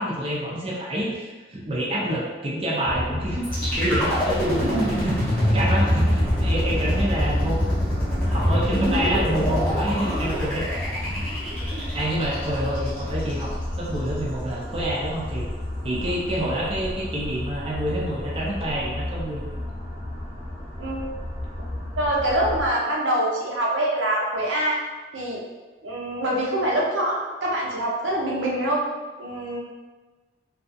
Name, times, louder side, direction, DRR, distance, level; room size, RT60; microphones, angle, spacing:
voice 1, 0.0-8.0 8.2-11.1 11.9-15.4 15.8-19.5, right 1 dB, 30° right, -5 dB, 0.4 m, -28 dB
sound 1, 2.8-22.7, left 1 dB, 40° left, 0.7 m, -32 dB
sound 2, 3.4-13.4, equal, 5° left, 0.9 m, -24 dB
voice 2, 22.0-24.8 25.1-25.4 25.8-28.8 29.2-29.6, right 1 dB, 90° right, -3 dB, 0.6 m, -25 dB
2.5 x 2.3 x 2.5 m, 1.3 s
head